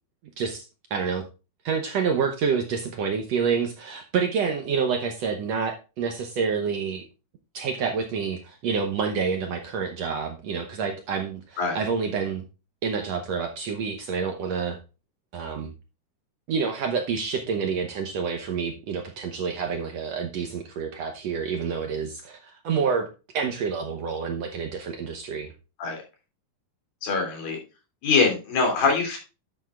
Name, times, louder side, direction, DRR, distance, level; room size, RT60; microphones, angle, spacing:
voice 1, 0.9-1.2 1.6-7.1 7.5-12.4 12.8-14.8 15.3-15.7 16.5-23.1 23.3-25.5, right 6 dB, 70° right, 4 dB, 1.7 m, -28 dB
voice 2, 27.0-27.6 28.0-29.2, left 4 dB, 80° left, 1 dB, 4.6 m, -23 dB
10.5 x 8.0 x 2.4 m, 0.30 s
omnidirectional pair, 4.0 m